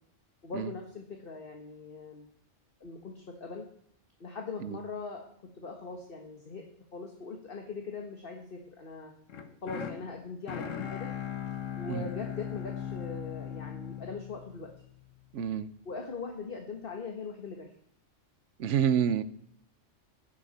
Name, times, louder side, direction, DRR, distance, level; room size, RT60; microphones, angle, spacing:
voice 1, 0.4-2.3 2.8-3.7 4.2-5.2 5.5-6.6 6.9-9.1 9.6-11.1 11.8-14.7 15.8-17.7, left 4 dB, 45° left, 2 dB, 1.7 m, -41 dB
sound 1, 9.3-15.4, left 9 dB, 85° left, 1.4 m, -39 dB
voice 2, 15.3-15.7 18.6-19.2, right 8 dB, 75° right, 15 dB, 1.1 m, -28 dB
15.5 x 11.5 x 4.2 m, 0.67 s
omnidirectional pair, 1.3 m